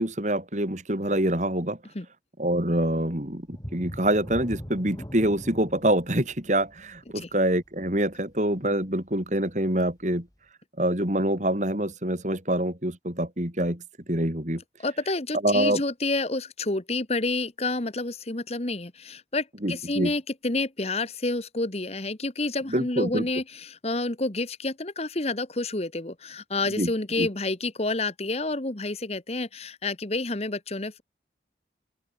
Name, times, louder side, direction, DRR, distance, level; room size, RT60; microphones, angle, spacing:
voice 1, 0.0-1.8 2.4-10.3 10.8-13.8 14.1-14.6 15.4-15.8 19.6-20.1 22.7-23.3 26.8-26.9 27.2-27.3, right 1 dB, 40° right, 4.3 m, -25 dB
sound 1, 3.5-8.9 9.4-9.5 10.0-10.1, equal, 20° left, 7.0 m, -41 dB
voice 2, 14.8-31.0, left 2 dB, 35° left, 1.3 m, -29 dB
open air
head